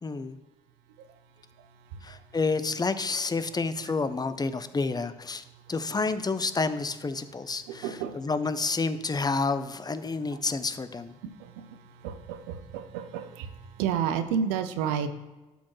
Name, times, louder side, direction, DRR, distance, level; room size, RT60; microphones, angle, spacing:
voice 1, 0.0-0.4 2.0-11.1, left 4 dB, 25° left, 12 dB, 0.6 m, -29 dB
voice 2, 7.7-8.2 11.4-11.7 12.0-13.5 13.8-15.1, right 8 dB, 80° right, 10 dB, 0.6 m, -30 dB
11.5 x 4.2 x 3.2 m, 1.1 s
hypercardioid pair, 50°, 16 cm